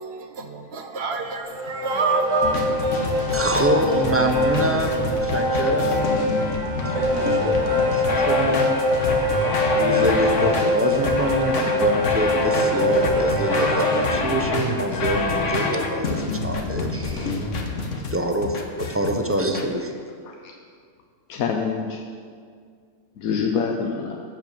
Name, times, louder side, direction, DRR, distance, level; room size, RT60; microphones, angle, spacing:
voice 1, 0.0-2.5, right 5 dB, 55° right, 6 dB, 1.1 m, -26 dB
sound 1, 1.4-14.1, left 1 dB, 75° right, 2.6 m, -23 dB
sound 2, 2.4-19.7, left 3 dB, 65° left, 1.4 m, -27 dB
voice 2, 3.3-6.1 6.8-8.7 9.7-17.3 18.1-19.9, right 1 dB, 15° right, 3 dB, 0.6 m, -26 dB
voice 3, 21.3-22.0 23.2-24.2, left 6 dB, 90° left, 3 dB, 1.2 m, -26 dB
14.5 x 5.1 x 6.9 m, 2.1 s
omnidirectional pair, 1.4 m